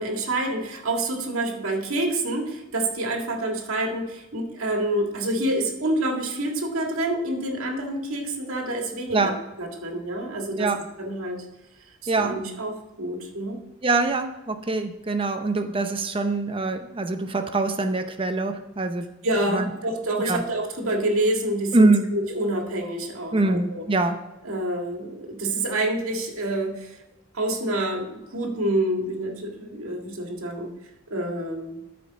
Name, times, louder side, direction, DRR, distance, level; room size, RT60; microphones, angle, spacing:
voice 1, 0.0-9.3 9.6-11.5 12.0-13.6 19.2-23.8 24.4-27.0 27.3-30.7 31.1-31.8, right 1 dB, 85° right, 2 dB, 1.8 m, -27 dB
voice 2, 12.1-12.4 13.8-19.1 19.5-19.7 20.2-20.4 21.7-22.1 23.3-24.2, right 3 dB, 25° right, 7 dB, 0.7 m, -23 dB
13.0 x 5.2 x 4.0 m, 0.96 s
head